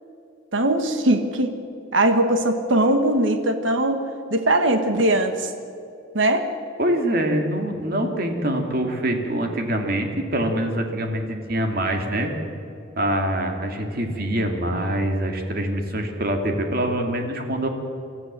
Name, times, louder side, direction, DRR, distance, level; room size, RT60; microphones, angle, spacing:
voice 1, 0.5-1.5 1.9-4.0 4.3-5.5 6.1-6.4, right 1 dB, 80° right, 7 dB, 1.5 m, -20 dB
voice 2, 6.8-12.3 13.0-17.7, right 1 dB, 50° right, 4 dB, 2.5 m, -24 dB
24.0 x 14.5 x 7.5 m, 2.6 s
head